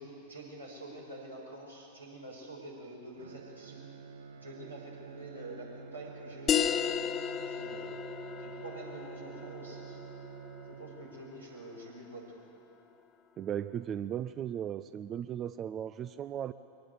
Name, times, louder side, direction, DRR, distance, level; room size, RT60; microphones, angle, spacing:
voice 1, 0.0-3.9 4.4-7.9 8.4-10.0 10.6-12.4, right 1 dB, 85° right, -3 dB, 6.0 m, -47 dB
Bowed string instrument, 3.2-11.5, right 6 dB, 65° right, 1.1 m, -48 dB
sound 1, 6.5-11.6, left 8 dB, 25° left, 1.0 m, -34 dB
voice 2, 13.4-16.5, right 10 dB, 30° right, 14 dB, 0.5 m, -36 dB
23.5 x 18.0 x 8.1 m, 2.8 s
figure-of-eight pair, 90°, 0 cm